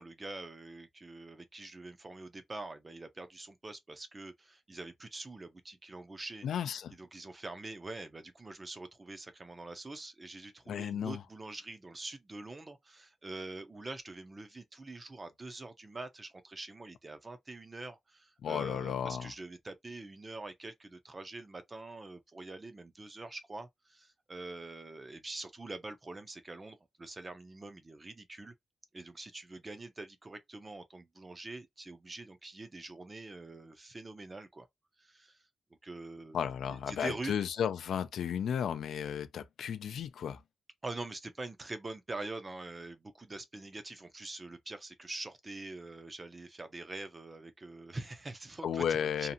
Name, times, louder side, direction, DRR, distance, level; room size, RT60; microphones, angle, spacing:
voice 1, 0.0-6.5 7.0-28.5 28.9-34.7 35.0-35.4 35.8-36.4 36.9-37.3 40.8-49.3, right 2 dB, 20° right, 0.5 m, -45 dB
voice 2, 6.4-6.9 10.7-11.2 18.4-19.3 36.3-40.4 48.6-49.3, left 8 dB, 85° left, 0.4 m, -34 dB
2.7 x 2.5 x 2.5 m
wide cardioid pair, 170°, 0 cm